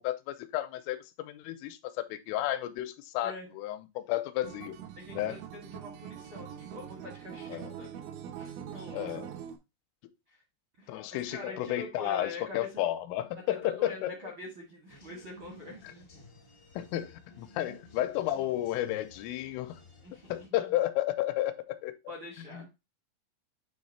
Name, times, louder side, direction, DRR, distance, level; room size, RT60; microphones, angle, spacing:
voice 1, 0.0-4.8 5.2-5.4 7.5-7.7 8.9-9.3 10.9-14.1 16.8-19.8 20.3-22.0 22.5-22.8, left 14 dB, 90° left, 3.2 m, -32 dB
Acoustic guitar, 4.4-9.6, right 9 dB, 90° right, 3.5 m, -43 dB
voice 2, 5.0-8.0 8.3-9.2 10.3-10.4 10.8-12.7 13.4-15.9 20.0-20.6 22.1-22.7, left 2 dB, 70° right, 1.1 m, -45 dB
sound 1, 14.9-20.5, left 2 dB, 75° left, 1.0 m, -54 dB
9.2 x 3.2 x 4.1 m
omnidirectional pair, 5.7 m